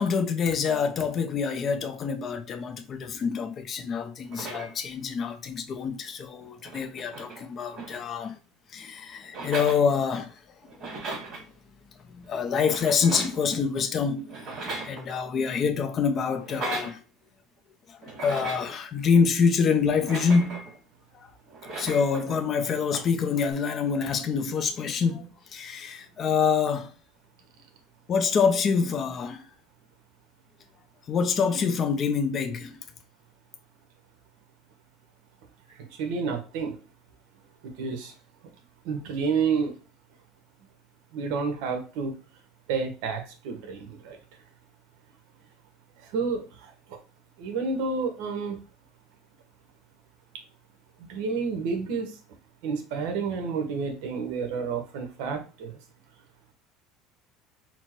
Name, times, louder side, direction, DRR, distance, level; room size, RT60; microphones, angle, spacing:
voice 1, 0.0-8.3 8.7-10.3 10.9-11.0 12.1-14.5 14.8-17.0 18.2-20.6 21.1-21.2 21.7-26.9 28.1-29.4 31.1-32.8, left 6 dB, 30° left, 0.5 m, -26 dB
sound 1, 4.2-4.9 6.1-6.2 6.4-8.4 9.2-10.3 10.6-11.4 12.5-13.5 14.3-15.4 16.3-17.0 18.0-18.8 19.9-20.8 21.5-22.4 23.4-23.5, right 3 dB, 30° right, 2.1 m, -38 dB
voice 2, 35.8-36.8 37.6-38.1 38.8-39.7 41.1-42.1 42.7-44.2 46.0-47.0 47.4-48.6 51.0-52.2 52.6-55.8, right 5 dB, 70° right, 1.0 m, -30 dB
4.4 x 2.1 x 4.4 m
cardioid pair, 175°, 0 cm